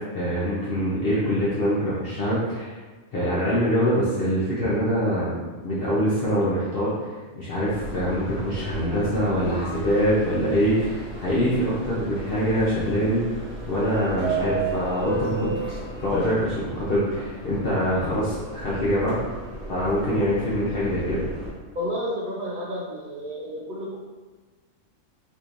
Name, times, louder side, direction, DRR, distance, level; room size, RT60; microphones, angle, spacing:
voice 1, 0.0-2.8 3.1-5.3 5.6-13.2 13.7-19.2 19.7-21.2, equal, 55° left, -8 dB, 0.8 m, -24 dB
Subway metro underground, 7.7-21.5, right 2 dB, 30° right, 1.4 m, -34 dB
voice 2, 21.7-24.0, equal, 60° right, -4 dB, 0.5 m, -31 dB
3.6 x 2.9 x 2.5 m, 1.3 s
omnidirectional pair, 1.4 m